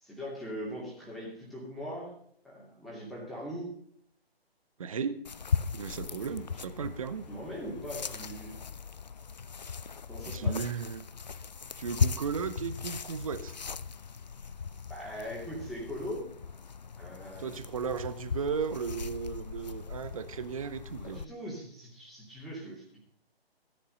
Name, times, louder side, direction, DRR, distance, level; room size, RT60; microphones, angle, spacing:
voice 1, 0.0-2.1 2.4-3.7 7.3-8.5 10.1-10.6 14.9-16.3 17.0-17.5 21.0-23.0, equal, ahead, -5 dB, 2.6 m, -40 dB
voice 2, 4.8-5.2 5.7-7.3 10.3-11.1 11.8-13.5 17.4-21.2, right 6 dB, 35° right, 12 dB, 0.8 m, -35 dB
sound 1, 5.2-21.2, left 6 dB, 45° left, 0.4 m, -37 dB
15.5 x 10.5 x 3.9 m, 0.67 s
figure-of-eight pair, 145°, 32 cm